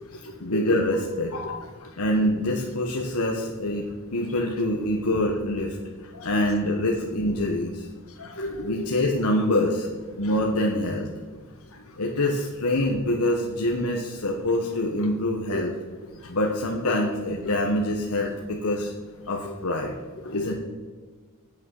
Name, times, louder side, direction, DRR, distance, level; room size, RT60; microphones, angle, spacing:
voice 1, 0.4-1.3 2.0-3.8 4.1-5.8 6.2-7.9 8.6-9.9 10.2-11.1 12.0-15.7 16.3-18.9 19.3-19.9 20.3-20.5, left 1 dB, 85° left, 0 dB, 1.2 m, -25 dB
voice 2, 8.2-8.9 15.5-15.6 16.2-16.3 16.9-17.0 19.5-19.6 20.3-20.5, left 2 dB, 70° left, 3 dB, 1.8 m, -32 dB
8.6 x 8.4 x 6.4 m, 1.5 s
head